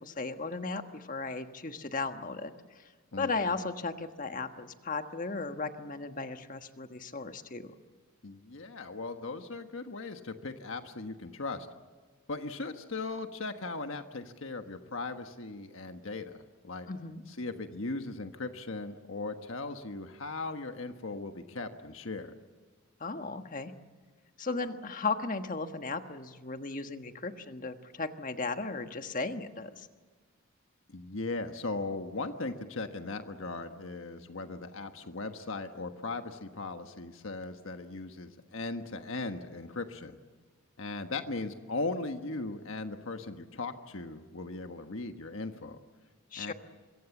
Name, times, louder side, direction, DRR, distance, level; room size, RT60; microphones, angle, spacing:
voice 1, 0.0-2.5 3.2-7.7 16.9-17.2 23.0-23.7 24.4-29.9 46.3-46.5, left 3 dB, 40° left, 7 dB, 1.4 m, -36 dB
voice 2, 3.1-3.5 8.2-11.7 12.3-16.9 17.3-22.3 30.9-40.2 40.8-45.8 46.4-46.5, left 3 dB, 65° left, 7 dB, 1.4 m, -38 dB
26.0 x 23.0 x 7.2 m, 1.4 s
head